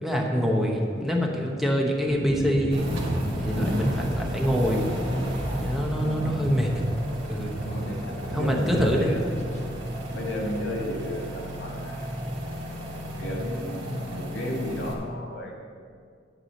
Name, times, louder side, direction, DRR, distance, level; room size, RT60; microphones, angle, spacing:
voice 1, 0.0-2.9 3.4-4.9 5.6-6.8 7.2-7.5 8.3-9.1, equal, ahead, -1 dB, 1.1 m, -25 dB
sound 1, 2.1-7.0 7.3-8.0 8.2-9.0 9.3-9.7, equal, 35° left, 1.3 m, -34 dB
sound 2, 2.7-14.9, equal, 75° right, 1.8 m, -32 dB
voice 2, 6.0-6.4 7.6-9.3 10.1-12.2 12.9-15.5, left 1 dB, 90° left, -1 dB, 2.1 m, -34 dB
11.0 x 4.9 x 7.7 m, 2.1 s
head